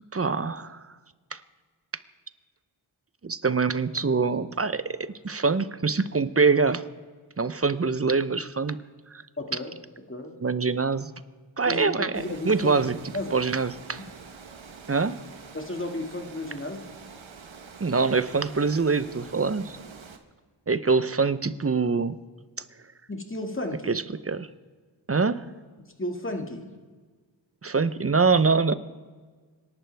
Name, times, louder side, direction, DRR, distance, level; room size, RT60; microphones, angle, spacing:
voice 1, 0.1-0.8 1.3-1.4 3.2-5.0 5.2-6.8 7.4-8.8 9.1-9.2 10.4-11.1 11.6-13.0 13.3-14.0 14.9-15.1 17.8-19.8 20.7-22.2 23.9-24.5 25.1-25.4 27.6-28.8, right 4 dB, 30° right, 14 dB, 0.7 m, -24 dB
voice 2, 9.4-9.7 10.1-10.3 11.6-13.4 14.0-14.1 15.5-16.9 23.1-23.9 25.8-26.6, left 1 dB, 25° left, 3 dB, 2.0 m, -34 dB
Water, 12.1-20.2, right 5 dB, 80° right, 1.2 m, -46 dB
26.5 x 11.5 x 3.4 m, 1.5 s
wide cardioid pair, 50°, 46 cm